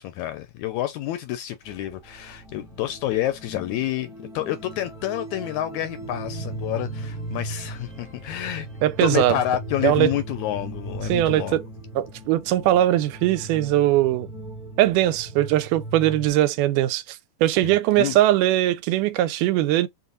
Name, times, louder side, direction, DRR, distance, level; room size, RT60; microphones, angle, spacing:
voice 1, 0.0-4.1 4.3-8.7 9.0-11.6 17.6-18.2, left 13 dB, 80° left, 1.8 m, -29 dB
sound 1, 1.7-16.3, right 1 dB, ahead, 0.8 m, -37 dB
voice 2, 8.8-9.4 9.8-10.1 11.1-11.6 12.0-14.3 14.8-17.2 17.4-19.9, right 14 dB, 80° right, 2.0 m, -20 dB
5.5 x 2.5 x 3.8 m
omnidirectional pair, 3.7 m